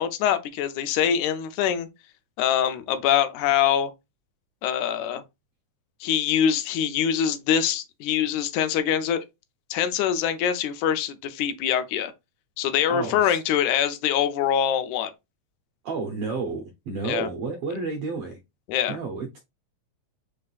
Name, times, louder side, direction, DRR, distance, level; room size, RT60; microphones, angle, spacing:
voice 1, 0.0-1.9 2.4-3.9 4.6-5.2 6.0-9.2 9.7-12.1 12.6-15.1 17.0-17.3 18.7-19.0, left 9 dB, 80° left, 1.9 m, -24 dB
voice 2, 12.9-13.4 15.8-18.4 18.9-19.4, right 4 dB, 80° right, 1.3 m, -31 dB
5.4 x 3.2 x 2.3 m
omnidirectional pair, 3.4 m